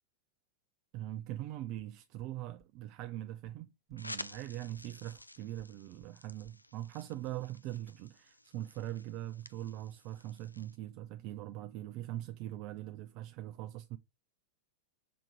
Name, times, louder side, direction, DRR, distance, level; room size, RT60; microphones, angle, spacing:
voice 1, 0.9-14.0, right 14 dB, 40° right, 0.6 m, -42 dB
sound 1, 1.8-1.9 2.2-2.3 2.6-2.7 3.0-3.1 3.5-3.6 3.9-4.0 4.3-4.4 4.8-4.9 5.2-5.3 5.6-5.7 6.0-6.1 6.4-6.5, left 3 dB, 15° left, 1.4 m, -63 dB
sound 2, 4.0-10.8, left 1 dB, 85° left, 0.4 m, -51 dB
6.1 x 3.7 x 4.6 m
figure-of-eight pair, 90°, 0 cm